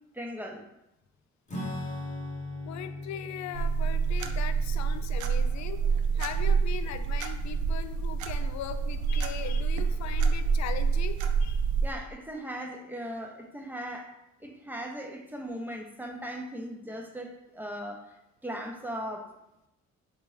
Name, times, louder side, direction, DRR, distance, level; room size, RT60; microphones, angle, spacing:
voice 1, 0.1-0.6 11.8-14.1 14.4-18.2 18.4-19.3, equal, 5° right, 2 dB, 0.6 m, -38 dB
Acoustic guitar / Strum, 1.5-7.4, left 2 dB, 25° left, 0.9 m, -41 dB
voice 2, 2.7-5.8 6.1-11.6, left 9 dB, 65° left, 10 dB, 0.5 m, -39 dB
sound 1, 3.5-11.9, right 5 dB, 75° right, 0.5 m, -27 dB
4.1 x 3.4 x 3.2 m, 0.86 s
cardioid pair, 90°, 30 cm